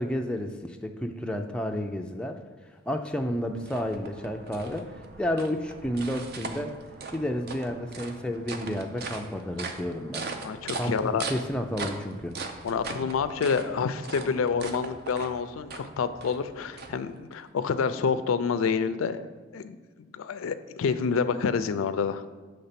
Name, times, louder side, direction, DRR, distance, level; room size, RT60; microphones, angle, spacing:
voice 1, 0.0-2.4 2.9-4.9 5.2-6.8 7.1-10.3 10.7-12.4, equal, 5° left, 3 dB, 0.3 m, -31 dB
sound 1, 3.0-17.4, right 3 dB, 50° right, 0.6 m, -40 dB
voice 2, 10.4-11.3 12.6-19.2 19.5-19.8 20.1-22.2, left 5 dB, 90° left, 12 dB, 0.4 m, -28 dB
6.7 x 3.3 x 5.7 m, 1.4 s
head